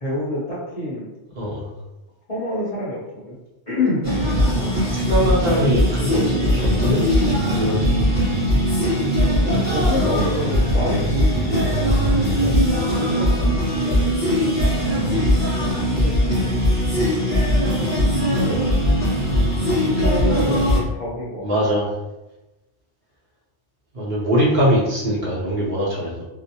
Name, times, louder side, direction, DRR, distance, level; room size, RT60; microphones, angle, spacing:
voice 1, 0.0-1.0 2.3-3.0 3.3-3.4 3.7-4.1 9.4-12.1 12.4-12.5 12.9-14.5 15.6-16.4 18.3-18.6 19.8-21.7, left 1 dB, 40° left, -8 dB, 0.7 m, -27 dB
voice 2, 1.4-1.7 4.6-8.2 11.8-12.0 21.4-21.9 23.9-26.2, equal, 50° right, -7 dB, 0.8 m, -22 dB
sound 1, 4.0-20.8, equal, 15° right, 0.8 m, -20 dB
2.5 x 2.1 x 2.7 m, 0.98 s
omnidirectional pair, 1.2 m